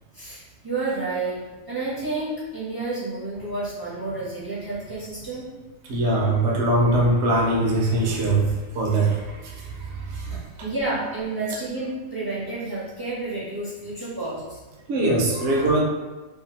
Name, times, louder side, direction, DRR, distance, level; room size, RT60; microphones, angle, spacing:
voice 1, 0.1-1.4 1.7-5.5 10.6-14.6, right 2 dB, 25° right, -9 dB, 0.5 m, -30 dB
voice 2, 5.8-10.5 14.2-14.3 14.9-15.8, right 2 dB, 65° right, -3 dB, 0.8 m, -22 dB
2.7 x 2.2 x 2.8 m, 1.2 s
omnidirectional pair, 1.4 m